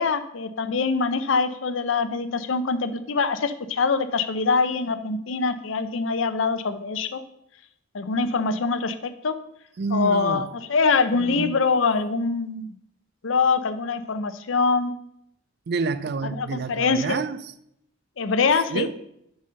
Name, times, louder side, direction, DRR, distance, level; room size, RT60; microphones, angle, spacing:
voice 1, 0.0-7.2 7.9-9.3 9.9-12.7 13.2-14.9 16.4-17.2 18.2-18.9, left 4 dB, 70° left, 0.6 m, -24 dB
voice 2, 9.8-10.5 11.1-11.5 15.7-17.5 18.7-18.9, right 4 dB, 55° right, 0.4 m, -28 dB
7.5 x 4.1 x 6.3 m
head